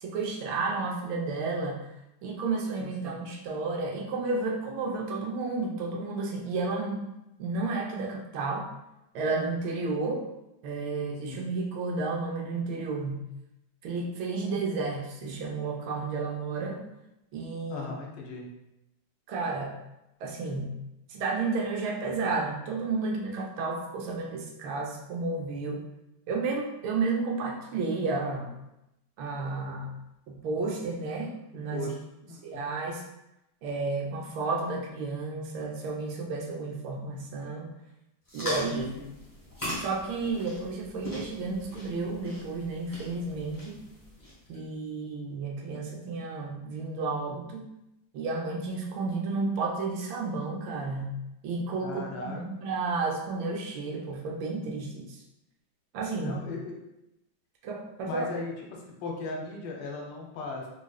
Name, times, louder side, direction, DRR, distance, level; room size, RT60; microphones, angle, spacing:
voice 1, 0.0-1.8 2.2-7.0 7.4-8.7 9.1-10.2 10.6-13.2 13.8-16.8 17.3-17.9 19.3-19.8 20.2-20.7 21.1-25.8 26.3-28.5 29.2-29.9 30.3-31.9 32.4-33.0 33.6-37.7 38.3-38.9 39.8-43.8 44.5-47.6 48.1-51.1 51.4-55.2 55.9-56.4 57.6-58.3, right 3 dB, 75° right, -1 dB, 1.3 m, -32 dB
voice 2, 2.8-3.2 11.2-11.4 14.5-14.6 17.7-18.5 31.7-32.0 32.2-32.6 38.7-39.2 51.8-52.4 56.2-56.8 58.0-58.5 58.8-60.7, left 3 dB, 80° left, -1 dB, 1.6 m, -37 dB
sound 1, 38.2-44.6, equal, 15° left, 0.7 m, -40 dB
4.1 x 3.1 x 2.3 m, 0.89 s
omnidirectional pair, 2.3 m